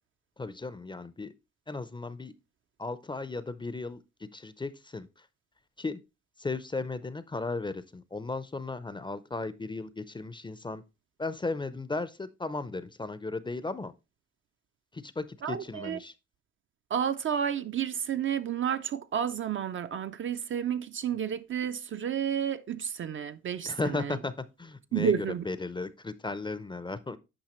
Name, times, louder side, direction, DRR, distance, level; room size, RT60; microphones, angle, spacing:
voice 1, 0.4-1.3 1.7-2.3 2.8-5.3 5.8-6.0 6.4-10.8 11.2-13.9 14.9-16.1 23.7-27.2, left 3 dB, 15° left, 0.5 m, -36 dB
voice 2, 15.4-16.0 16.9-24.2 24.9-25.5, right 8 dB, 40° right, 0.4 m, -31 dB
8.8 x 5.5 x 3.0 m
cardioid pair, 90°, 30 cm